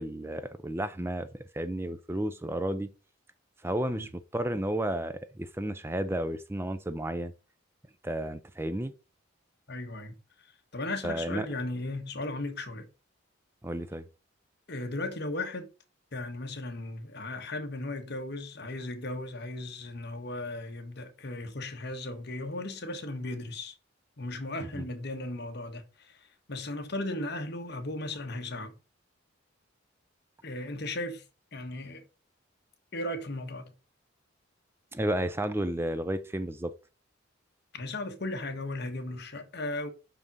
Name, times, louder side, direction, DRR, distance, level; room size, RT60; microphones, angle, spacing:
voice 1, 0.0-2.9 3.6-7.3 8.0-8.9 11.0-11.5 13.6-14.1 24.7-24.8 34.9-36.7, right 1 dB, 10° right, 0.5 m, -32 dB
voice 2, 9.7-10.1 10.7-12.9 14.7-15.7 16.1-23.8 24.2-28.7 30.4-31.2 31.5-32.0 32.9-33.7 37.7-39.9, left 2 dB, 55° left, 1.4 m, -36 dB
6.0 x 5.5 x 5.4 m
head